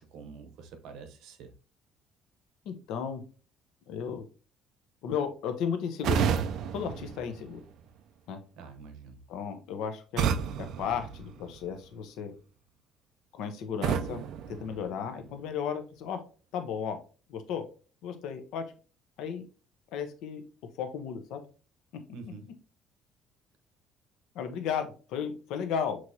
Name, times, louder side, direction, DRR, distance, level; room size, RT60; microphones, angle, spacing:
voice 1, 0.0-1.5 8.6-9.2 22.1-22.5, right 5 dB, 70° right, 0.8 m, -46 dB
voice 2, 2.6-3.2 3.9-4.2 5.0-6.3 6.7-7.6 8.3-8.4 9.3-10.3 10.8-12.3 13.3-14.2 14.5-16.2 16.5-17.0 17.3-17.6 18.0-18.6 19.2-19.4 19.9-20.4 20.8-21.4 24.3-26.0, left 7 dB, 70° left, 0.7 m, -34 dB
sound 1, 6.0-8.0 10.2-11.9 13.8-15.4, right 8 dB, 55° right, 0.3 m, -32 dB
6.1 x 3.0 x 2.7 m
cardioid pair, 175°, 0 cm